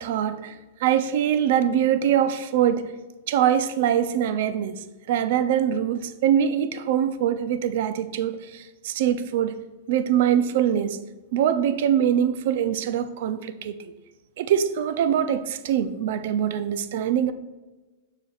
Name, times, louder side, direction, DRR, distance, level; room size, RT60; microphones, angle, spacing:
voice 1, 0.0-2.9 3.3-9.6 9.9-11.0 11.3-13.9 14.4-17.3, right 9 dB, 60° right, 11 dB, 0.4 m, -23 dB
6.8 x 6.7 x 2.4 m, 1.2 s
supercardioid pair, 145°, 0 cm